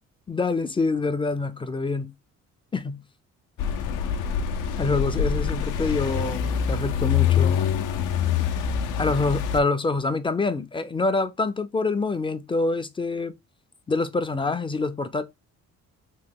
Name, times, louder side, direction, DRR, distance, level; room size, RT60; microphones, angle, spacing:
voice 1, 0.3-2.1 2.7-3.0 4.8-7.6 9.0-13.3 13.9-15.2, left 3 dB, 20° left, 0.3 m, -26 dB
sound 1, 3.6-9.6, left 8 dB, 85° left, 0.5 m, -25 dB
3.0 x 2.1 x 3.5 m
cardioid pair, 90°, 30 cm